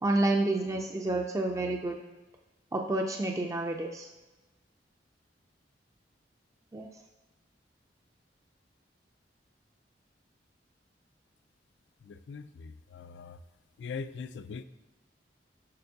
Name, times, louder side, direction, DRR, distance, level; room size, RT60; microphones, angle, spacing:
voice 1, 0.0-1.9 2.7-4.1 6.7-6.9, right 2 dB, 20° right, 2 dB, 0.3 m, -29 dB
voice 2, 12.0-13.4 13.8-14.6, left 5 dB, 70° left, 13 dB, 0.3 m, -41 dB
6.6 x 5.9 x 2.7 m, 1.1 s
head